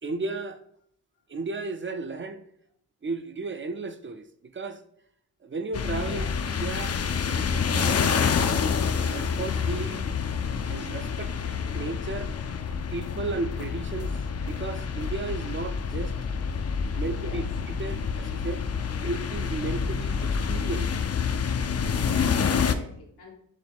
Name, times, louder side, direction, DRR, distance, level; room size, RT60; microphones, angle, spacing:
voice 1, 0.0-0.6 1.3-2.4 3.0-4.3 4.5-4.8 5.4-6.3 6.6-7.0 7.5-8.3 9.1-10.1 10.7-11.3 11.7-12.3 12.9-14.2 14.4-16.1 16.9-18.6 19.0-20.9, right 3 dB, 35° right, 0.4 m, -34 dB
sound 1, 5.7-22.7, left 6 dB, 45° left, 0.4 m, -28 dB
voice 2, 5.9-6.3 17.1-17.4 21.9-23.3, left 2 dB, 90° left, 1.2 m, -43 dB
6.4 x 2.2 x 3.4 m
cardioid pair, 50°, 37 cm